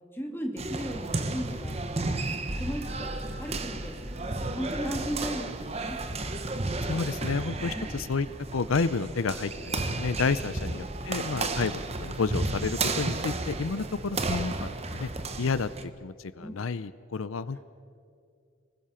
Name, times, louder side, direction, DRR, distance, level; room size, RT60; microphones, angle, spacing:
voice 1, 0.1-1.8 2.5-6.0 7.6-7.9 10.5-10.7 16.4-16.6 17.5-17.6, equal, 10° left, 1 dB, 2.5 m, -37 dB
sound 1, 0.6-15.8, right 2 dB, 30° right, 1.0 m, -33 dB
sound 2, 2.5-11.8, equal, 5° right, 1.4 m, -45 dB
voice 2, 6.8-8.3 8.5-11.7 12.0-15.1 15.4-15.7 16.0-17.6, left 4 dB, 85° left, 15 dB, 0.6 m, -30 dB
30.0 x 20.5 x 5.8 m, 2.4 s
head